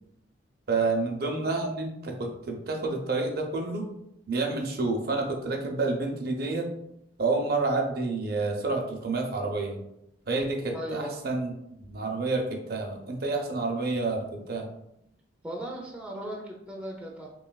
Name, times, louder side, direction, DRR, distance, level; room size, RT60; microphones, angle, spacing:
voice 1, 0.7-3.9 4.3-6.7 7.2-9.8 10.3-11.5 11.9-14.7, right 3 dB, 55° right, 1 dB, 0.6 m, -29 dB
voice 2, 10.7-11.2 15.4-17.3, right 1 dB, 5° right, -3 dB, 0.3 m, -37 dB
3.0 x 2.9 x 2.2 m, 0.80 s
head